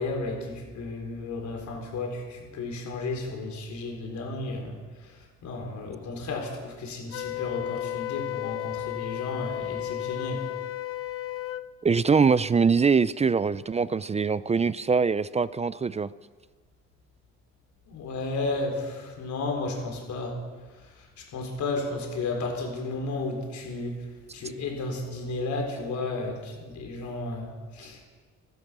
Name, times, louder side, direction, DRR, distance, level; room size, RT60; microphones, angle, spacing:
voice 1, 0.0-10.4 17.9-20.4 20.7-24.0 24.3-28.1, left 3 dB, 70° left, 2 dB, 4.2 m, -33 dB
Wind instrument woodwind instrument, 7.1-11.7, left 15 dB, 50° left, 0.6 m, -33 dB
voice 2, 11.8-16.1, right 5 dB, 20° right, 17 dB, 0.4 m, -23 dB
16.0 x 13.5 x 6.2 m, 1.4 s
cardioid pair, 90°, 30 cm